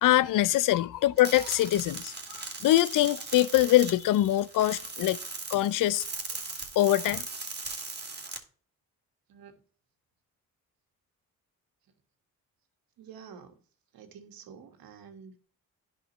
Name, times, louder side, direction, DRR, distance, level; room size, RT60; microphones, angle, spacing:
voice 1, 0.0-5.2 5.5-6.0 6.8-7.3, left 14 dB, 60° left, 0.5 m, -24 dB
sound 1, 1.2-8.4, right 3 dB, 30° right, 2.1 m, -39 dB
voice 2, 13.0-13.6 13.9-15.4, right 7 dB, 75° right, 1.6 m, -49 dB
11.0 x 5.3 x 3.0 m
cardioid pair, 80°, 36 cm